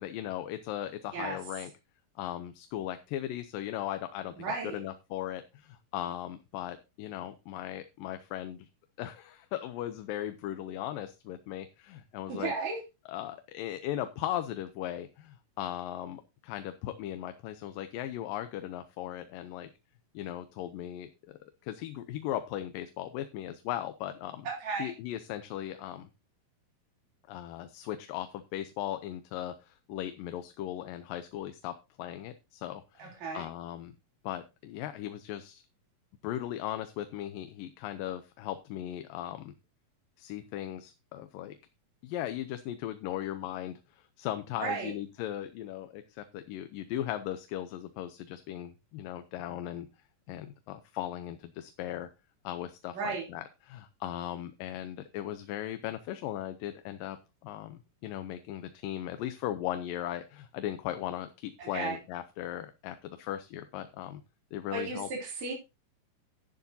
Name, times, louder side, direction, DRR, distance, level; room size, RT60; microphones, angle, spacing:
voice 1, 0.0-1.7 2.2-8.7 9.0-12.5 13.1-19.7 20.1-21.1 21.6-24.5 24.8-26.1 27.3-33.9 34.2-35.6 36.2-39.5 40.2-41.6 42.0-49.9 50.3-52.1 52.4-57.2 57.4-64.2 64.5-65.1, left 12 dB, 85° left, 9 dB, 2.5 m, -38 dB
voice 2, 4.3-4.8 12.3-12.8 24.4-24.9 33.0-33.5 44.6-44.9 52.9-53.3 61.6-62.0 64.7-65.5, right 4 dB, 55° right, -1 dB, 4.6 m, -34 dB
12.0 x 10.5 x 2.8 m, 0.26 s
omnidirectional pair, 3.9 m